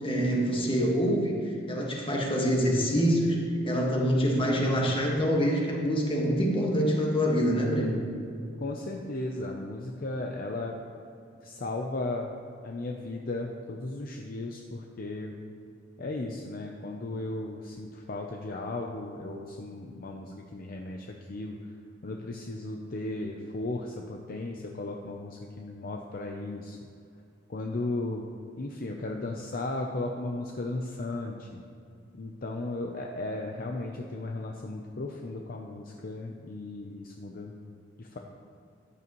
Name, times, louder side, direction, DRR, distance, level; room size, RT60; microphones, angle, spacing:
voice 1, 0.0-8.1, equal, 30° left, -1 dB, 1.7 m, -26 dB
voice 2, 8.6-10.8 11.4-12.3 12.6-15.3 16.0-21.6 22.0-26.8 27.5-28.3 28.6-31.6 32.2-37.5 38.0-38.2, left 2 dB, 50° left, 1 dB, 0.7 m, -35 dB
13.5 x 9.6 x 3.1 m, 2.5 s
head